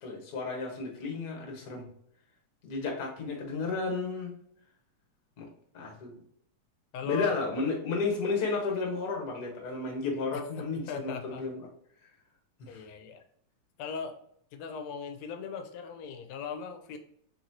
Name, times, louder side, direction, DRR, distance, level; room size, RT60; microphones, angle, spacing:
voice 1, 0.0-1.9 2.6-4.3 5.4-5.5 5.7-6.2 7.0-11.6 12.6-12.8, left 4 dB, 50° left, 0 dB, 1.2 m, -32 dB
voice 2, 6.9-7.4 10.3-11.4 12.7-13.2 13.8-14.2 14.5-17.0, left 6 dB, 75° left, 7 dB, 1.8 m, -39 dB
4.5 x 4.1 x 2.7 m, 0.69 s
omnidirectional pair, 3.3 m